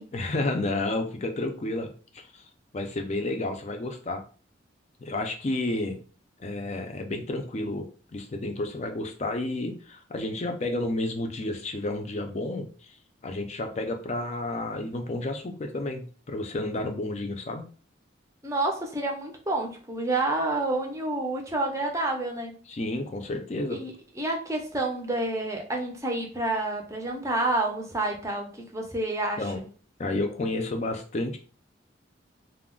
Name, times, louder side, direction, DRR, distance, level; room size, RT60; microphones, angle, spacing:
voice 1, 0.1-1.9 2.1-2.4 2.7-4.2 5.0-6.0 6.4-13.0 13.2-16.0 16.3-17.7 22.7-23.8 29.4-29.6 30.0-31.4, left 2 dB, 35° left, 4 dB, 0.4 m, -31 dB
voice 2, 18.4-22.5 23.7-29.4, right 2 dB, 15° right, 1 dB, 0.5 m, -29 dB
2.3 x 2.1 x 3.6 m, 0.39 s
head